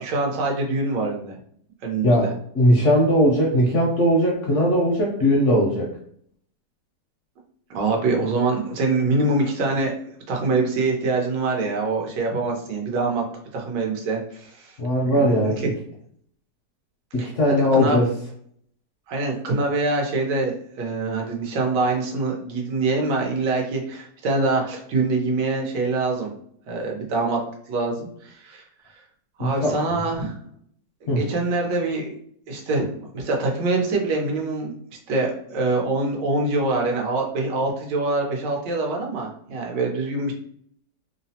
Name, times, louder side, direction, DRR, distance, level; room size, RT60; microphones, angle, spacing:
voice 1, 0.0-1.3 1.8-2.3 7.7-9.9 10.3-13.2 13.5-14.7 15.0-15.7 17.2-18.1 19.1-26.3 26.7-27.4 27.7-28.6 29.4-30.3 31.0-32.1 32.5-34.7 35.1-40.3, right 3 dB, 85° right, 0 dB, 1.4 m, -24 dB
voice 2, 2.5-5.9 14.8-15.7 17.1-18.1 29.4-30.0 31.1-31.2, equal, 70° left, -2 dB, 0.7 m, -19 dB
3.2 x 2.0 x 2.7 m, 0.64 s
omnidirectional pair, 1.8 m